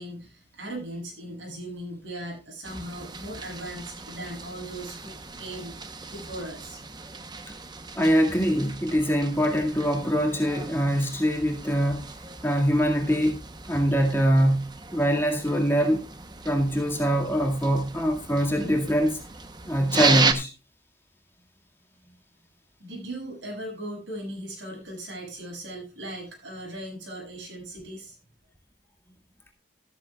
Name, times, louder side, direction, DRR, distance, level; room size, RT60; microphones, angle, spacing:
voice 1, 0.0-6.8 22.8-28.2, right 1 dB, 75° right, 7.4 m, -38 dB
sound 1, 2.6-20.3, right 4 dB, 20° right, 0.9 m, -34 dB
voice 2, 8.0-12.1 12.4-13.4 13.7-16.0 16.4-19.2 19.7-20.5, equal, 10° left, 2.0 m, -23 dB
13.5 x 13.0 x 2.4 m
head